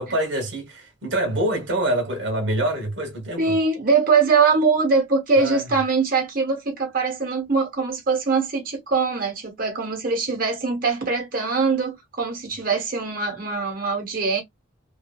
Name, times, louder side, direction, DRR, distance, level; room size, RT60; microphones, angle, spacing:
voice 1, 0.0-3.6 5.4-5.6, right 1 dB, 70° right, 0.9 m, -25 dB
voice 2, 3.4-14.4, right 4 dB, 45° right, 0.9 m, -22 dB
2.6 x 2.5 x 2.2 m
head